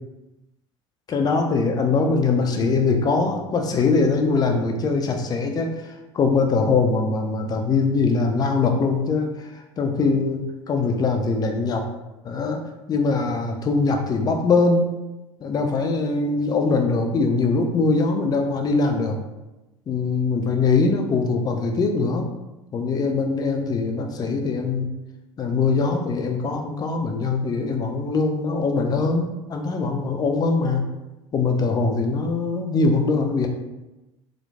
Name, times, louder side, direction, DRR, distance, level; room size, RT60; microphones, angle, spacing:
voice 1, 1.1-11.8 12.2-12.6 12.9-14.9 15.4-19.2 19.9-22.3 22.7-24.9 25.4-30.9 31.3-33.5, left 4 dB, 25° left, 3 dB, 0.4 m, -22 dB
2.9 x 2.1 x 2.2 m, 1.0 s
figure-of-eight pair, 70°, 17 cm